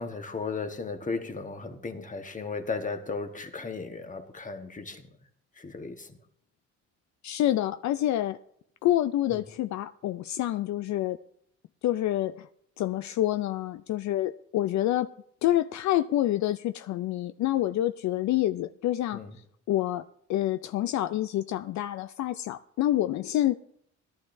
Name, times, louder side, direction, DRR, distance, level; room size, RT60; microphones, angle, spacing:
voice 1, 0.0-5.1 5.6-6.2 9.3-9.4 19.1-19.3, left 4 dB, 25° left, 1.3 m, -35 dB
voice 2, 7.2-8.4 8.8-11.2 11.8-12.5 12.8-15.1 15.4-19.2 19.7-23.5, left 13 dB, 70° left, 0.4 m, -27 dB
17.5 x 12.0 x 2.6 m
cardioid pair, 90°, 30 cm